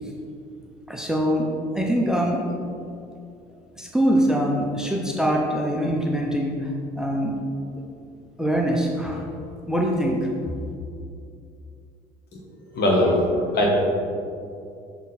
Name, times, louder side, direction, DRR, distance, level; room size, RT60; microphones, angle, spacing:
voice 1, 0.9-1.5 1.7-2.6 3.7-7.4 7.7-7.8 8.4-9.3 9.7-10.3, equal, 5° right, -1 dB, 0.8 m, -23 dB
voice 2, 12.7-13.7, left 1 dB, 55° left, -1 dB, 1.5 m, -20 dB
6.1 x 3.8 x 4.2 m, 2.5 s
hypercardioid pair, 65°, 20 cm